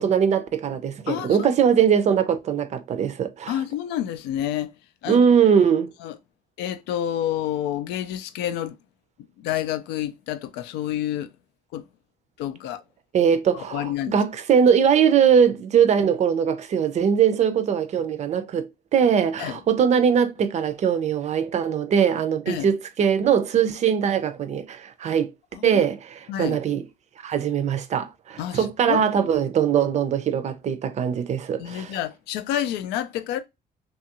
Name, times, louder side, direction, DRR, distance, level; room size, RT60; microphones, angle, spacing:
voice 1, 0.0-3.5 5.1-5.9 13.1-25.3 25.6-26.8 27.2-32.0, right 7 dB, 45° right, 0.4 m, -21 dB
voice 2, 1.1-1.5 3.5-4.7 5.0-5.2 6.0-6.2 6.6-8.8 9.4-11.3 11.7-11.9 12.4-12.8 13.5-14.2 19.4-19.6 22.5-22.7 25.5-25.8 26.3-26.6 28.4-29.0 31.6-33.4, left 11 dB, 90° left, 0.4 m, -29 dB
2.8 x 2.4 x 2.8 m
cardioid pair, 110°, 17 cm